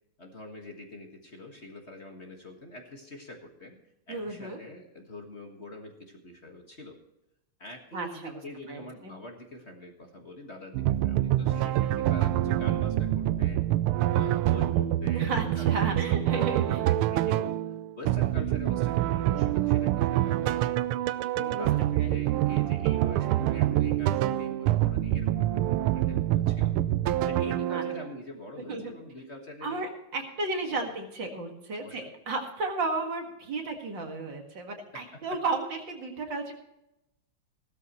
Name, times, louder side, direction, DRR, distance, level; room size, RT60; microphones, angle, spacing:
voice 1, 0.2-3.8 4.1-7.0 7.6-13.6 14.1-15.3 15.6-17.6 18.0-20.7 20.9-21.0 21.3-26.7 27.3-29.9 31.8-32.1 34.9-35.2, left 1 dB, 35° left, 2 dB, 1.7 m, -45 dB
voice 2, 4.1-4.6 7.9-8.3 8.7-9.1 15.1-16.8 21.5-22.1 27.7-27.8 28.7-28.9 29.6-36.5, right 3 dB, 60° right, 3 dB, 2.5 m, -33 dB
sound 1, 10.7-28.1, right 13 dB, 90° right, 1.5 m, -26 dB
16.0 x 13.0 x 3.0 m, 0.86 s
omnidirectional pair, 2.3 m